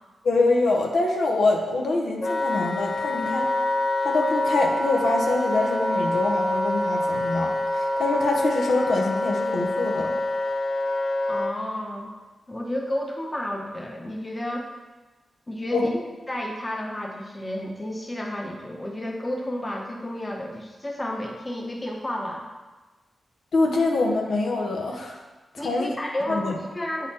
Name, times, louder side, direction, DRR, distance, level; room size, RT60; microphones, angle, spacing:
voice 1, 0.2-3.5 4.0-10.1 15.7-15.8 23.5-25.2 25.5-26.0 26.3-26.6, left 2 dB, 80° left, 0 dB, 0.9 m, -25 dB
Wind instrument woodwind instrument, 2.2-11.5, left 1 dB, 50° left, 0.7 m, -26 dB
voice 2, 11.3-12.1 12.5-14.7 15.5-15.9 16.3-22.5 25.6-27.1, left 1 dB, 25° left, 0 dB, 1.1 m, -31 dB
7.9 x 4.1 x 4.3 m, 1.2 s
cardioid pair, 75°, 0 cm